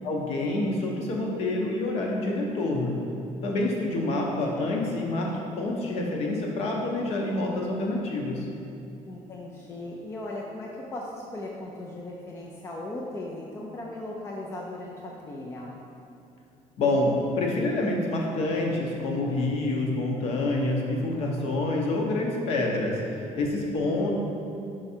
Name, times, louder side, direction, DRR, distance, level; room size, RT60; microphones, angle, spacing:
voice 1, 0.0-3.0 3.4-8.4 16.8-24.1, left 2 dB, 50° left, 0 dB, 0.8 m, -27 dB
voice 2, 9.1-15.8 23.8-24.1, left 1 dB, 20° left, -2 dB, 0.4 m, -38 dB
4.8 x 4.5 x 4.3 m, 2.8 s
cardioid pair, 180°, 13 cm